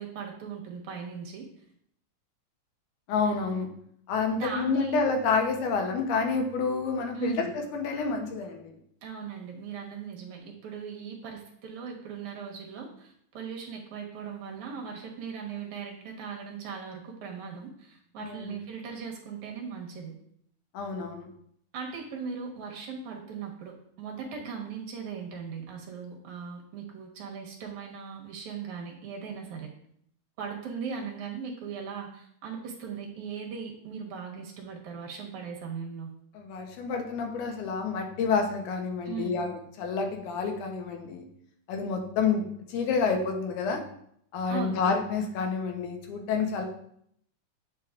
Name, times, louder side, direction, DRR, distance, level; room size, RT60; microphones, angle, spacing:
voice 1, 0.0-1.5 4.3-5.0 7.2-7.5 9.0-20.1 21.7-29.7 30.4-36.1 39.0-39.4 44.5-44.8, right 6 dB, 75° right, 0 dB, 2.6 m, -38 dB
voice 2, 3.1-3.7 4.1-8.8 18.2-18.5 20.7-21.3 36.3-41.3 41.7-43.8 44.3-46.6, left 5 dB, 85° left, 3 dB, 2.4 m, -29 dB
8.1 x 5.8 x 2.4 m, 0.69 s
omnidirectional pair, 3.5 m